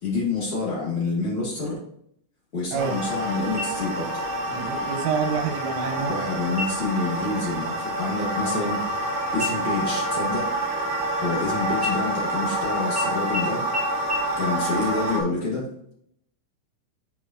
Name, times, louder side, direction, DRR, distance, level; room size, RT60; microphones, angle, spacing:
voice 1, 0.0-1.8 2.5-4.2 6.1-8.8 9.3-10.5 11.2-13.7 14.4-15.7, left 3 dB, 40° left, -6 dB, 1.9 m, -28 dB
sound 1, 2.8-15.2, right 1 dB, 60° right, 2.5 m, -27 dB
sound 2, 3.6-4.2 4.6-4.7 5.3-5.8 6.5-7.0 7.4-7.7 8.0-9.1 9.4-11.4 11.8-12.6 12.9-13.0 13.3-13.4 13.7-13.8 14.1-14.2, left 3 dB, 30° right, 0.8 m, -34 dB
voice 2, 4.5-6.2, right 6 dB, 80° right, 4 dB, 3.3 m, -27 dB
8.2 x 5.5 x 2.9 m, 0.71 s
omnidirectional pair, 5.9 m